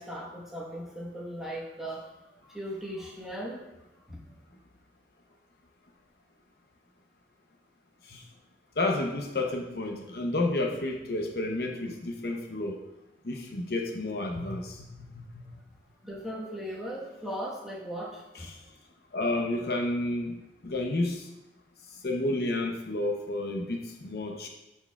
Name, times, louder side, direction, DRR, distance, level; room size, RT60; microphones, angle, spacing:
voice 1, 0.0-3.7 4.1-4.2 16.0-18.5, equal, ahead, -6 dB, 1.1 m, -38 dB
voice 2, 8.8-12.8 13.2-15.4 18.4-18.5 19.1-20.3 20.6-21.3 22.0-24.5, left 2 dB, 55° left, 1 dB, 0.7 m, -31 dB
12.5 x 4.5 x 2.3 m, 0.98 s
head